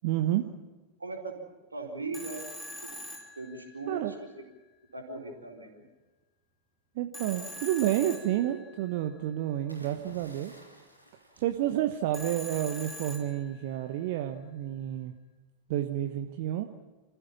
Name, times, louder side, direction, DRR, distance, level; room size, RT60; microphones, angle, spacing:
voice 1, 0.0-0.4 3.9-4.1 6.9-10.5 11.4-15.1 15.7-16.7, right 12 dB, 50° right, 6 dB, 1.1 m, -30 dB
voice 2, 1.0-1.4 1.7-2.4 3.4-4.1 4.3-4.4 4.9-5.8, right 3 dB, 80° right, 0 dB, 4.2 m, -38 dB
Telephone, 2.1-4.1 7.1-8.9 12.1-13.8, equal, 5° left, 5.1 m, -43 dB
sound 1, 9.7-12.4 13.7-14.0, equal, 90° left, 3.0 m, -54 dB
27.0 x 15.0 x 7.1 m, 1.2 s
figure-of-eight pair, 90°, 0 cm